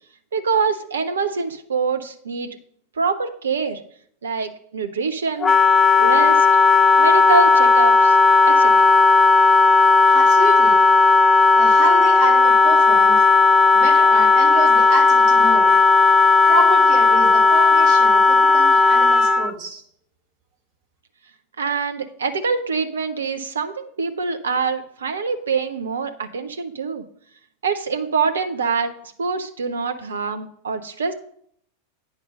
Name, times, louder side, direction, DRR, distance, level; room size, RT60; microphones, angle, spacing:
voice 1, 0.3-2.5 3.0-3.8 4.2-5.5 6.0-6.5 7.0-8.2 8.5-8.7 21.6-27.0 27.6-28.9 29.2-31.1, right 5 dB, 70° right, 8 dB, 0.6 m, -24 dB
Wind instrument woodwind instrument, 5.4-19.5, left 4 dB, 15° left, 0.4 m, -14 dB
voice 2, 10.1-10.8 11.6-15.7 16.5-19.8, right 2 dB, 35° right, 2 dB, 1.9 m, -28 dB
9.2 x 5.2 x 5.2 m, 0.64 s
figure-of-eight pair, 90°, 0 cm